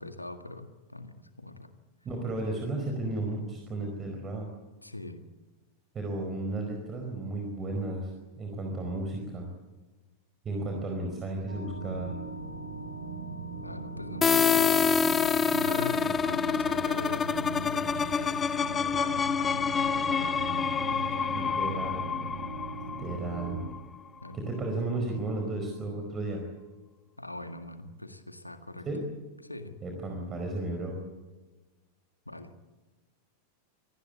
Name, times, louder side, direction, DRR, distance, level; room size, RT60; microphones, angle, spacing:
voice 1, 0.0-1.7 4.8-5.2 13.6-14.8 15.5-18.3 18.6-21.9 24.2-24.5 27.2-28.9 29.4-29.8 32.3-32.5, left 2 dB, 85° left, 8 dB, 1.8 m, -41 dB
voice 2, 2.0-4.5 5.9-9.5 10.4-12.2 21.3-22.1 23.0-23.6 24.3-26.4 28.8-29.0 29.8-31.0, right 2 dB, 25° right, 2 dB, 4.9 m, -34 dB
sound 1, 11.5-23.7, right 3 dB, 75° right, 4.8 m, -40 dB
sound 2, 14.2-23.8, left 6 dB, 20° left, 0.8 m, -27 dB
27.5 x 18.5 x 8.4 m, 1.2 s
figure-of-eight pair, 90°, 0 cm